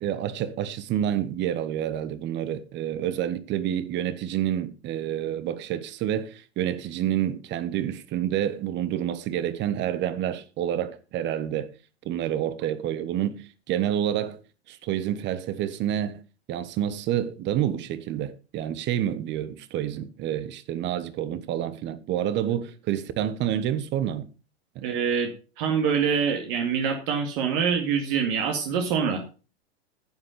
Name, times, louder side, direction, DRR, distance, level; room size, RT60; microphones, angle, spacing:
voice 1, 0.0-11.7 12.0-14.4 14.7-16.2 16.5-24.3 24.7-24.8, right 11 dB, 35° right, 1.2 m, -28 dB
voice 2, 24.8-25.3 25.6-29.2, right 6 dB, 55° right, 2.1 m, -25 dB
10.5 x 7.8 x 5.0 m
hypercardioid pair, 115°, 33 cm